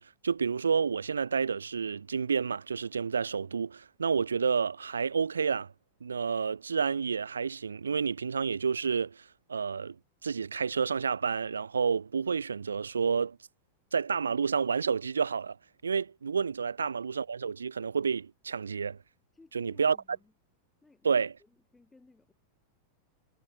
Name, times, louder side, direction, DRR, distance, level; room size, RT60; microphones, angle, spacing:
voice 1, 0.0-5.7 6.0-9.2 9.5-10.0 10.2-13.4 13.9-15.6 15.8-19.0 19.5-20.0 21.0-21.3, right 6 dB, 75° right, 0.4 m, -30 dB
voice 2, 19.3-20.3 20.8-22.3, left 3 dB, 10° left, 3.6 m, -60 dB
figure-of-eight pair, 90°, 0 cm